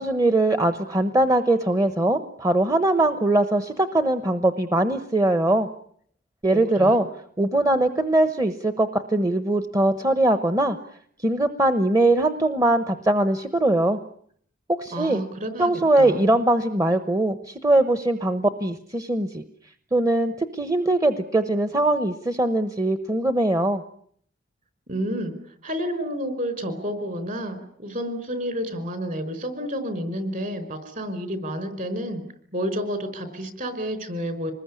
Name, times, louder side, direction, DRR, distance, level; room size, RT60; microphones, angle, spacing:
voice 1, 0.0-5.7 6.4-7.1 7.4-10.8 11.2-14.0 14.7-15.2 15.6-19.4 19.9-23.8, right 1 dB, 20° right, 10 dB, 1.0 m, -21 dB
voice 2, 6.5-7.0 14.9-15.7 16.0-16.3 24.9-25.3 25.6-32.2 32.5-34.5, equal, 45° right, 11 dB, 5.0 m, -30 dB
25.5 x 20.5 x 9.8 m, 0.65 s
head